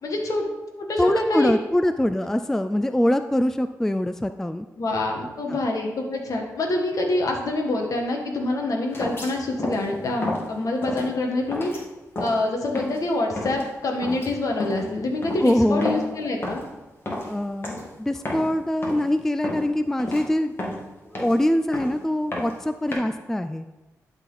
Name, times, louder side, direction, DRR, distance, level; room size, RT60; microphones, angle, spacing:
voice 1, 0.0-0.5 0.8-1.5 4.8-11.7 12.2-16.6, left 2 dB, 65° left, 1 dB, 1.5 m, -26 dB
voice 2, 1.0-4.7 5.5-5.6 15.4-15.9 17.3-20.5 21.2-23.7, left 1 dB, 5° left, 10 dB, 0.3 m, -23 dB
sound 1, 8.9-9.3 9.6-9.9 10.2-10.5 10.8-11.1 11.5-11.8 12.2-12.4 12.8-13.0 13.4-13.6 14.0-14.3 14.6-14.9 15.2-16.2 16.4-16.7 17.1-17.4 17.6-17.9 18.2-18.5 18.8-19.1 19.4-19.7 20.0-20.2 20.6-21.4 21.7-22.0 22.3-22.9, left 1 dB, 40° left, 1.8 m, -31 dB
11.5 x 4.2 x 4.0 m, 1.1 s
cardioid pair, 80°, 6 cm